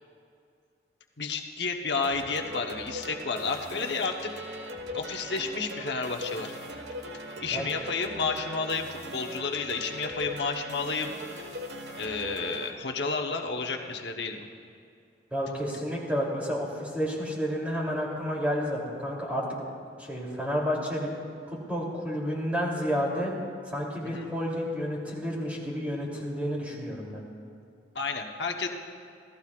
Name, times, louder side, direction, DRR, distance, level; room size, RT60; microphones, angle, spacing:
voice 1, 1.2-4.3 4.9-6.5 7.4-11.5 12.0-14.5 24.0-24.3 27.9-28.7, left 4 dB, 75° left, 2 dB, 1.0 m, -31 dB
sound 1, 2.0-12.7, equal, 75° right, 1.4 m, -40 dB
voice 2, 15.3-19.7 20.0-21.1 21.5-23.3 23.7-27.2, equal, 10° right, -4 dB, 3.0 m, -30 dB
26.5 x 17.0 x 2.4 m, 2.4 s
head